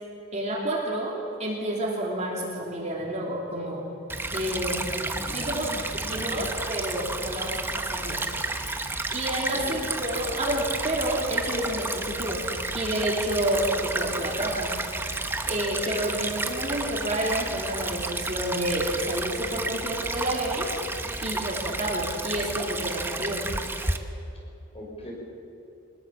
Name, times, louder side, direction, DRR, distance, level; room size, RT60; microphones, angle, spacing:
voice 1, 0.3-3.9 4.3-4.9 5.3-8.2 9.1-12.4 12.7-14.7 15.5-20.7 21.2-23.4, right 1 dB, 30° right, -2 dB, 3.1 m, -29 dB
Stream / Trickle dribble, 4.1-24.0, right 2 dB, 10° right, 1.0 m, -31 dB
voice 2, 5.1-6.4 9.4-9.8 24.7-25.1, equal, 25° left, -2 dB, 6.1 m, -40 dB
23.5 x 20.5 x 7.4 m, 2.8 s
head